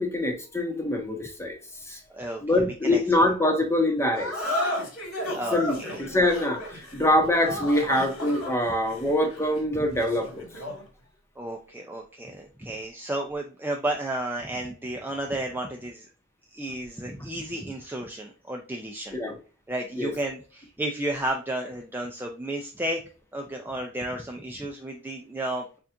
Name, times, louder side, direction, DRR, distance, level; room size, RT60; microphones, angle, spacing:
voice 1, 0.0-1.6 1.9-2.0 2.4-4.3 5.5-10.3 19.1-19.3 20.0-20.1, left 1 dB, 15° left, 3 dB, 0.9 m, -24 dB
voice 2, 2.1-2.4 2.8-3.0 5.3-5.9 11.4-16.1 16.5-19.2 19.7-23.0 23.3-25.8, right 1 dB, 10° right, 1 dB, 0.4 m, -32 dB
sound 1, 4.1-10.9, left 1 dB, 85° left, 1.9 m, -33 dB
6.9 x 2.4 x 2.5 m, 0.37 s
head